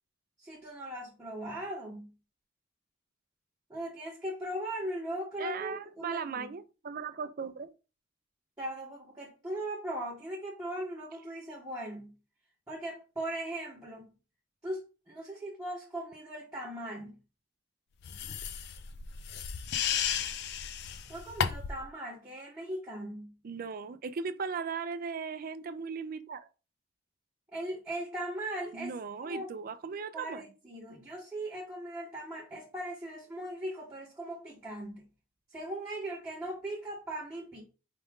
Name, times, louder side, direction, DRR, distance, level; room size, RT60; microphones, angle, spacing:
voice 1, 0.4-2.1 3.7-6.5 8.6-12.1 12.7-14.1 14.6-17.2 21.1-23.3 27.5-29.5 30.1-35.0 35.5-37.6, right 1 dB, 15° right, 1.0 m, -39 dB
voice 2, 5.4-7.7 23.4-26.5 28.7-30.4, right 5 dB, 45° right, 0.4 m, -37 dB
sound 1, 18.0-21.9, left 8 dB, 55° left, 0.4 m, -34 dB
4.9 x 2.5 x 3.5 m
head